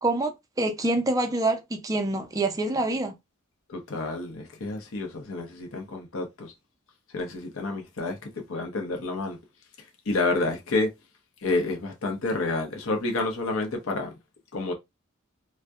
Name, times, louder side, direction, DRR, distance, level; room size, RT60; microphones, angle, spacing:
voice 1, 0.0-3.1, right 2 dB, 15° right, 0.4 m, -26 dB
voice 2, 3.7-6.5 7.1-8.2 8.5-9.4 10.1-10.9 11.4-14.1 14.5-14.7, left 3 dB, 70° left, 0.6 m, -29 dB
2.6 x 2.1 x 2.2 m
head